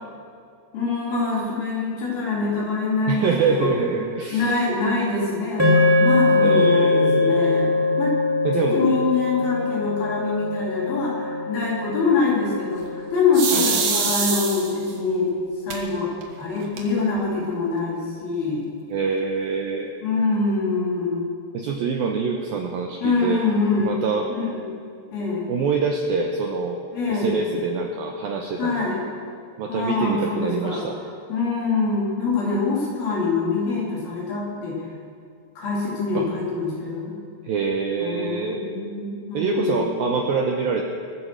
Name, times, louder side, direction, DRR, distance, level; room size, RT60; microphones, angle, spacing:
voice 1, 0.7-3.7 4.3-8.1 8.7-15.3 15.6-16.1 16.4-18.6 20.0-21.3 23.0-24.0 24.3-24.7 25.1-25.5 26.9-27.4 28.6-29.0 29.7-30.8 31.3-34.9 35.6-37.1 38.0-40.1, left 4 dB, 55° left, -5 dB, 5.4 m, -24 dB
voice 2, 3.1-4.6 6.4-7.8 8.4-8.8 13.5-14.2 18.9-19.9 21.5-23.4 23.8-24.3 25.5-26.8 27.1-28.9 29.6-31.0 36.1-36.3 37.4-38.6 39.3-40.8, right 5 dB, 80° right, 2 dB, 2.2 m, -25 dB
sound 1, 5.6-14.0, left 3 dB, 10° right, 0.8 m, -22 dB
sound 2, 13.3-14.9 15.7-15.8 16.2-16.3 16.6-17.2, right 6 dB, 60° right, 2.4 m, -24 dB
23.0 x 9.9 x 6.3 m, 2.4 s
omnidirectional pair, 5.4 m